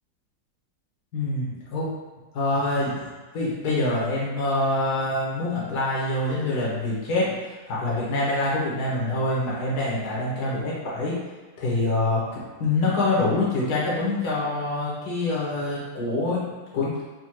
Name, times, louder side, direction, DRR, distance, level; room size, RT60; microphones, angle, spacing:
voice 1, 1.1-1.9 2.3-11.1 11.6-12.2 12.6-16.4 16.7-16.9, left 2 dB, 60° left, -6 dB, 1.7 m, -25 dB
4.3 x 2.4 x 4.4 m, 1.2 s
omnidirectional pair, 2.0 m